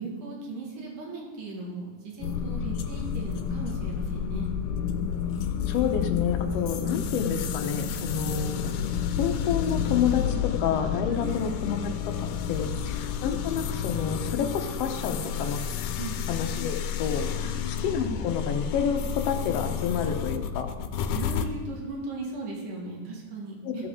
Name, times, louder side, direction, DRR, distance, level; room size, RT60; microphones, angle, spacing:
voice 1, 0.0-4.5 11.1-11.3 16.0-16.2 17.4-17.5 21.1-23.9, right 3 dB, 85° right, -2 dB, 3.4 m, -37 dB
sound 1, 2.2-21.5, left 8 dB, 85° left, 2.2 m, -30 dB
voice 2, 5.7-8.8 9.2-11.8 12.2-15.6 16.3-20.7 23.6-23.7, left 7 dB, 65° left, 4 dB, 1.8 m, -29 dB
15.5 x 7.6 x 3.7 m, 1.4 s
omnidirectional pair, 3.6 m